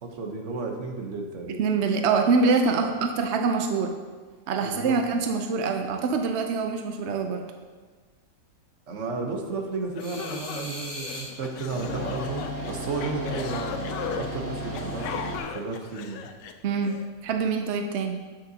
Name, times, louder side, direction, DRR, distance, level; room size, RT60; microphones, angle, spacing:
voice 1, 0.0-1.6 2.8-2.9 4.6-5.0 8.9-16.3, right 3 dB, 50° right, 2 dB, 1.1 m, -33 dB
voice 2, 1.6-3.9 4.5-7.4 16.6-17.0 17.2-18.2, right 4 dB, 75° right, 4 dB, 0.6 m, -25 dB
sound 1, 9.6-9.7 9.9-17.0, left 7 dB, 85° left, 1.3 m, -37 dB
sound 2, 10.0-11.3 11.6-15.4, equal, 65° left, 2.6 m, -35 dB
10.0 x 7.7 x 2.8 m, 1.5 s
omnidirectional pair, 1.9 m